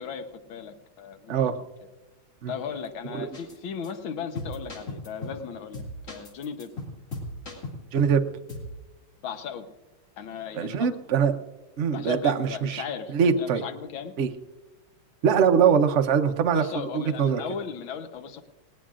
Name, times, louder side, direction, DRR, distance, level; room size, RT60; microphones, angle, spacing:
voice 1, 0.0-1.3 2.5-6.7 9.2-9.7 10.2-10.9 11.9-14.1 16.5-18.4, left 7 dB, 70° left, 7 dB, 1.8 m, -36 dB
sound 1, 3.3-3.6 3.8-3.9 4.4-5.4 5.7-8.2 8.5-8.7, left 2 dB, 35° left, 2.5 m, -37 dB
voice 2, 7.9-8.2 10.5-11.3 11.8-12.8 13.1-13.6 14.2-14.3 15.2-16.6 16.9-17.4, right 7 dB, 70° right, 6 dB, 0.6 m, -22 dB
18.5 x 18.5 x 2.5 m, 1.2 s
omnidirectional pair, 2.4 m